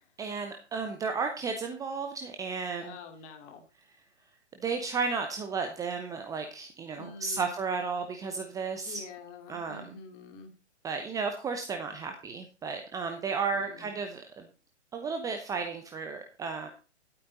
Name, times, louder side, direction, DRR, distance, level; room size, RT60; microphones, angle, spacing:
voice 1, 0.2-2.9 4.6-9.0 9.5-10.0 10.8-14.5 14.9-16.7, right 5 dB, 10° right, 5 dB, 0.8 m, -33 dB
voice 2, 2.8-3.6 6.9-7.5 8.8-10.5 13.5-14.0, left 4 dB, 30° left, 6 dB, 2.6 m, -47 dB
12.5 x 8.7 x 4.0 m, 0.35 s
figure-of-eight pair, 125°, 35 cm